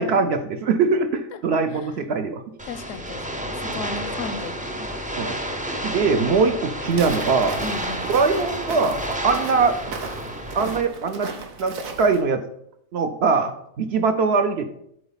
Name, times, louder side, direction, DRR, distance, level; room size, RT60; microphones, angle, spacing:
voice 1, 0.0-2.4 3.7-3.8 5.2-5.4 5.8-7.6 8.1-9.0 9.2-9.7 10.5-11.3 11.6-12.4 12.9-14.7, right 4 dB, 60° right, 7 dB, 0.8 m, -22 dB
voice 2, 2.6-5.1 7.6-8.1, left 4 dB, 75° left, 10 dB, 1.0 m, -36 dB
sound 1, 2.6-10.8, equal, 10° right, 0.3 m, -30 dB
Walk footsteps, 6.9-12.2, right 5 dB, 80° right, 1.4 m, -36 dB
7.9 x 3.9 x 5.6 m, 0.72 s
omnidirectional pair, 1.4 m